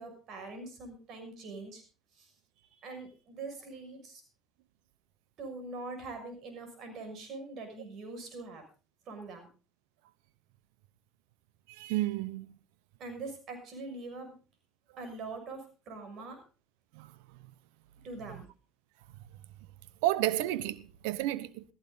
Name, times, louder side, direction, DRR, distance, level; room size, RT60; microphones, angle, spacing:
voice 1, 0.0-1.8 2.2-2.3 2.8-4.2 5.4-8.6 9.1-9.5 13.0-14.4 15.0-16.4 18.0-18.5, right 3 dB, 60° right, 6.3 m, -43 dB
voice 2, 11.7-12.6 16.9-17.1 20.0-21.6, right 15 dB, 80° right, 0.8 m, -31 dB
15.0 x 14.5 x 4.0 m
hypercardioid pair, 70°, 0 cm